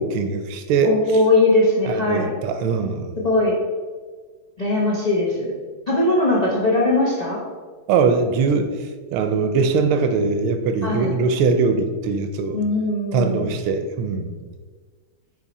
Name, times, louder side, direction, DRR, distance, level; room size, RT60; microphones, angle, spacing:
voice 1, 0.0-0.9 1.8-3.1 7.9-12.6 13.1-14.3, right 4 dB, 85° right, 8 dB, 1.5 m, -21 dB
voice 2, 0.8-2.3 3.2-3.5 4.6-5.5 5.9-7.4 10.8-11.2 12.5-13.4, left 2 dB, 85° left, -5 dB, 0.3 m, -20 dB
6.3 x 3.6 x 4.1 m, 1.5 s
omnidirectional pair, 2.3 m